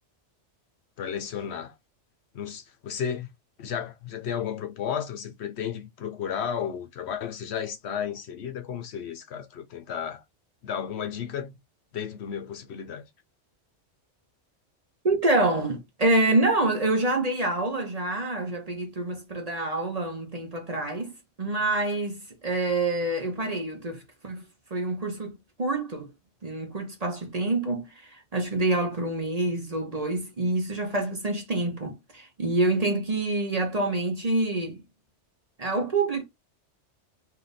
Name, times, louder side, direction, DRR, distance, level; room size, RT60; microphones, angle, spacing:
voice 1, 1.0-1.7 2.3-3.3 3.6-10.2 10.6-11.5 11.9-13.1, left 8 dB, 65° left, 0.9 m, -33 dB
voice 2, 15.0-21.1 21.4-24.4 24.7-26.1 26.4-34.8 35.6-36.2, right 2 dB, 35° right, 0.8 m, -27 dB
3.5 x 2.7 x 3.9 m
omnidirectional pair, 1.2 m